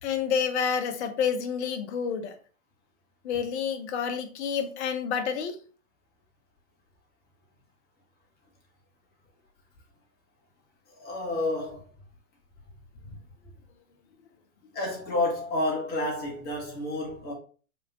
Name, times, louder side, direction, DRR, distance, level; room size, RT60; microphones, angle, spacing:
voice 1, 0.0-2.3 3.2-5.6, left 7 dB, 50° left, 1.0 m, -29 dB
voice 2, 10.9-11.9 14.7-17.3, left 2 dB, 20° left, 1.8 m, -30 dB
5.0 x 3.5 x 2.9 m
hypercardioid pair, 125°, 43 cm